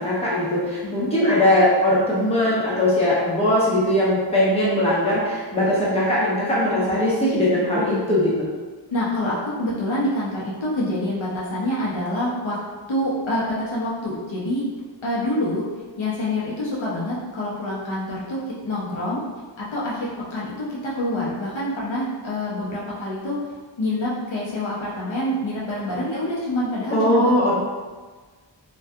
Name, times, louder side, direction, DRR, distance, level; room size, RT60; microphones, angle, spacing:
voice 1, 0.0-8.5 26.9-27.5, left 1 dB, 15° left, -9 dB, 0.9 m, -20 dB
voice 2, 7.7-8.1 8.9-12.6 12.9-14.6 15.0-15.6 16.0-19.2 19.6-23.4 23.8-27.5, left 1 dB, 75° left, -7 dB, 0.7 m, -26 dB
2.6 x 2.3 x 2.3 m, 1.4 s
wide cardioid pair, 55°, 46 cm